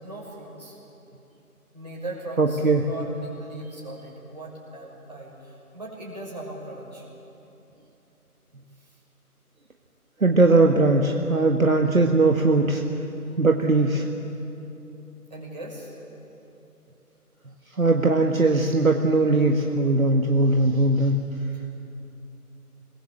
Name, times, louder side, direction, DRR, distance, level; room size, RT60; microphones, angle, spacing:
voice 1, 0.0-0.8 1.7-7.0 15.3-15.9, right 1 dB, 30° right, -4 dB, 6.2 m, -38 dB
voice 2, 2.4-2.9 10.2-12.8 13.4-14.1 17.8-21.2, right 2 dB, 60° right, 2 dB, 1.8 m, -20 dB
27.5 x 21.5 x 7.5 m, 3.0 s
figure-of-eight pair, 175°, 45 cm